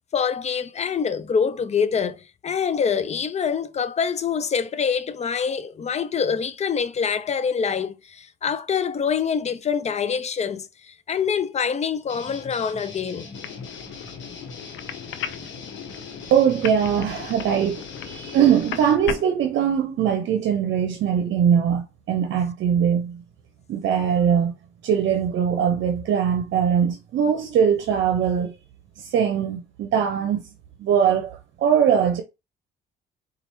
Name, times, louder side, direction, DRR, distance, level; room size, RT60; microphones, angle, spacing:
voice 1, 0.1-13.3, left 6 dB, 35° left, 0.5 m, -25 dB
sound 1, 12.1-19.0, left 4 dB, 70° left, 1.2 m, -41 dB
sound 2, 13.3-19.2, left 9 dB, 90° left, 0.5 m, -36 dB
voice 2, 16.3-23.2 23.7-24.5 24.8-28.5 29.0-30.4 30.8-32.2, right 8 dB, 70° right, 0.7 m, -21 dB
4.5 x 2.4 x 3.0 m
cardioid pair, 90°, 20 cm